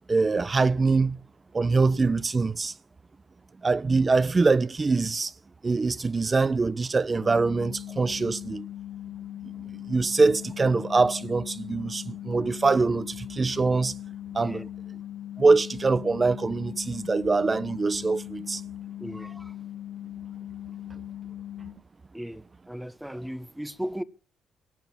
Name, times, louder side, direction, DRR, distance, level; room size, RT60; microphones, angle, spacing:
voice 1, 0.1-1.2 1.5-2.7 3.6-5.3 5.6-8.6 9.9-13.9 14.3-14.6 15.4-18.6, right 3 dB, 30° right, 0.8 m, -23 dB
sound 1, 7.2-21.7, left 12 dB, 65° left, 3.0 m, -39 dB
voice 2, 19.0-19.5 22.1-24.0, equal, 5° right, 1.1 m, -36 dB
18.0 x 6.9 x 9.6 m
cardioid pair, 90°, 0 cm